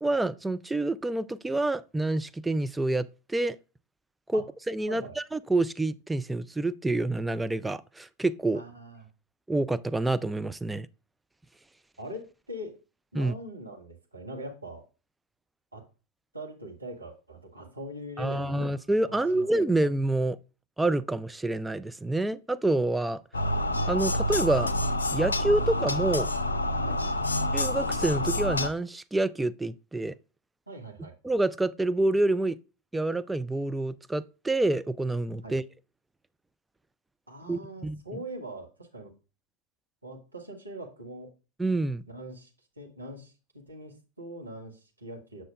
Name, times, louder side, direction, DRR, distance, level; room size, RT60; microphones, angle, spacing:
voice 1, 0.0-3.6 4.3-8.6 9.5-10.9 13.1-13.3 18.2-20.4 20.8-23.2 23.9-24.7 25.1-26.3 27.5-30.1 31.2-32.6 32.9-35.6 37.5-38.0 41.6-42.0, right 2 dB, 5° right, 0.3 m, -27 dB
voice 2, 8.5-9.1 12.0-12.7 13.1-14.8 15.7-15.8 16.3-19.5 26.8-27.4 30.7-31.1 35.4-35.6 37.3-39.1 40.0-41.3 42.1-42.5 42.8-45.4, right 1 dB, 80° right, 1.4 m, -42 dB
sound 1, 23.3-28.7, left 1 dB, 75° left, 0.6 m, -28 dB
7.5 x 6.3 x 2.4 m
figure-of-eight pair, 90°, 0 cm